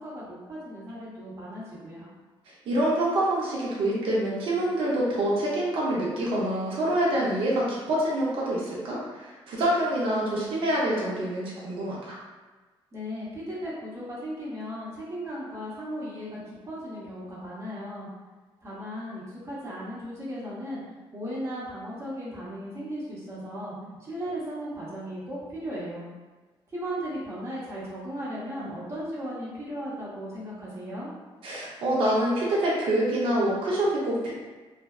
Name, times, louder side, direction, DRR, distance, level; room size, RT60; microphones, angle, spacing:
voice 1, 0.0-2.1 12.9-16.4 16.7-18.1 18.6-20.8 21.1-23.7 24.1-26.1 26.7-31.1, equal, 30° right, -8 dB, 0.7 m, -36 dB
voice 2, 2.7-12.2 28.6-28.7 31.4-34.3, right 1 dB, 65° right, -6 dB, 0.6 m, -26 dB
2.5 x 2.2 x 2.2 m, 1.3 s
wide cardioid pair, 165°, 10 cm